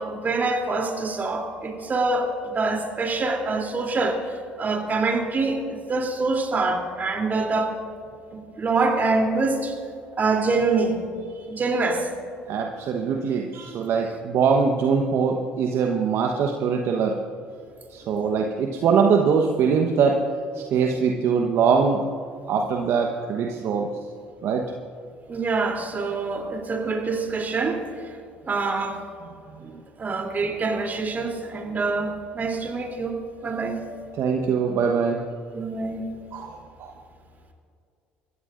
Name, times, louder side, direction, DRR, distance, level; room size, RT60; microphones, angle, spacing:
voice 1, 0.0-7.8 8.3-9.8 10.2-11.0 11.5-12.1 18.0-18.1 25.3-28.1 28.5-29.0 29.6-33.8 35.5-36.1, right 3 dB, 35° right, 2 dB, 3.1 m, -25 dB
voice 2, 12.5-17.2 17.9-20.2 20.5-22.0 22.5-23.9 24.4-24.7 34.2-35.2 36.3-36.9, right 6 dB, 60° right, 2 dB, 1.1 m, -22 dB
24.0 x 14.5 x 2.6 m, 2.5 s
hypercardioid pair, 60°, 5 cm